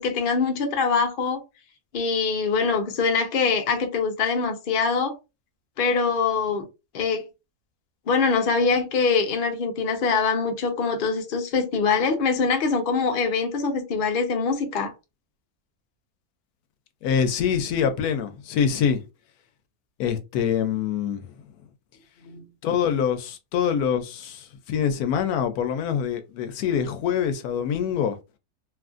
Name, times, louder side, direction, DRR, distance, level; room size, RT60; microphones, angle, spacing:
voice 1, 0.0-1.4 1.9-5.2 5.8-6.6 6.9-7.2 8.1-14.9 22.2-22.4, left 5 dB, 55° left, 0.6 m, -23 dB
voice 2, 17.0-19.0 20.0-21.2 22.6-28.2, left 7 dB, 80° left, 1.0 m, -25 dB
3.0 x 2.4 x 2.4 m
omnidirectional pair, 1.6 m